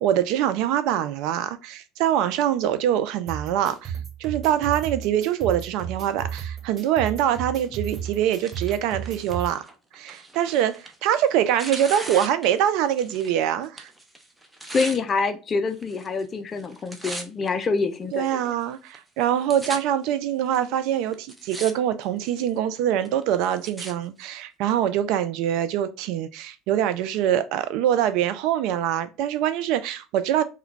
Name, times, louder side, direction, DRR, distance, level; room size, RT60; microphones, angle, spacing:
voice 1, 0.0-9.6 9.9-13.9 18.1-30.4, right 10 dB, 65° right, 0.3 m, -24 dB
sound 1, 3.3-9.5, right 8 dB, 35° right, 1.4 m, -34 dB
Tearing, 7.9-13.4 13.6-15.0 15.7-16.2 16.5-17.5 18.1-18.2 18.9-19.0 19.2-19.8 20.5-20.6 21.1-21.7 22.0-22.5 23.0-23.9 24.7-24.8, right 1 dB, 10° right, 0.6 m, -38 dB
voice 2, 14.7-18.3, left 4 dB, 35° left, 0.4 m, -26 dB
2.2 x 2.2 x 3.6 m
hypercardioid pair, 65°, 0 cm